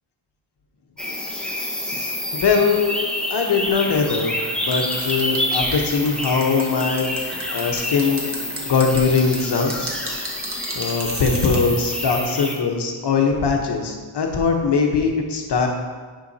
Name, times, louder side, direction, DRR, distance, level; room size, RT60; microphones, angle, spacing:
sound 1, 1.0-12.6, left 1 dB, ahead, 0.9 m, -28 dB
voice 1, 1.9-2.9 3.3-4.3 4.6-8.3 8.7-9.9 10.7-15.7, left 5 dB, 55° left, 2 dB, 1.1 m, -21 dB
sound 2, 4.7-11.6, right 2 dB, 30° right, 1.4 m, -34 dB
10.0 x 5.6 x 2.8 m, 1.5 s
wide cardioid pair, 120°, 48 cm